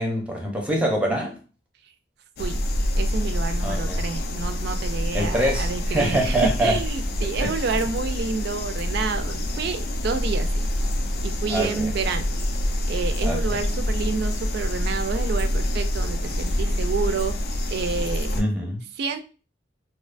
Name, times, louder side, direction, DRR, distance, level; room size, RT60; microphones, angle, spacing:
voice 1, 0.0-1.4 3.6-4.0 5.1-6.8 7.4-7.6 11.5-11.9 13.2-13.6 18.3-18.8, right 1 dB, 5° right, 0.5 m, -25 dB
sound 1, 2.4-18.4, left 1 dB, 60° left, 0.4 m, -26 dB
voice 2, 3.0-10.7 11.2-12.3 12.9-17.4 17.7-18.4 19.0-19.2, right 5 dB, 60° right, 0.3 m, -29 dB
2.6 x 2.1 x 2.4 m
head